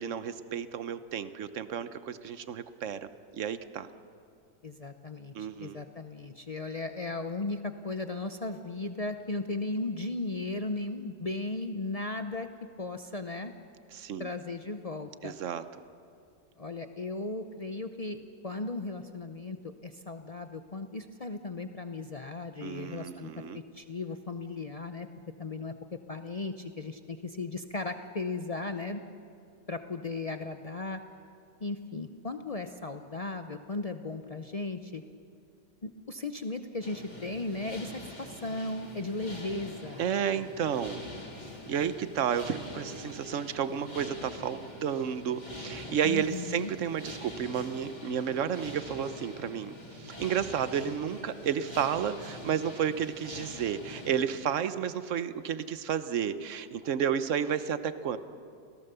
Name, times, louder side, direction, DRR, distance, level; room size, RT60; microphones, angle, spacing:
voice 1, 0.0-3.9 5.3-5.8 13.9-14.3 15.2-15.6 22.6-23.6 40.0-41.1 41.7-58.2, right 8 dB, 55° right, 12 dB, 1.0 m, -32 dB
voice 2, 4.6-12.5 12.8-13.5 14.2-15.3 16.6-25.1 25.4-29.0 29.7-31.0 31.6-35.0 35.8-40.0 46.0-46.7, left 3 dB, 70° left, 7 dB, 0.3 m, -36 dB
sound 1, 36.8-54.3, left 1 dB, 25° left, 2.9 m, -45 dB
29.0 x 17.5 x 6.9 m, 2.4 s
omnidirectional pair, 1.8 m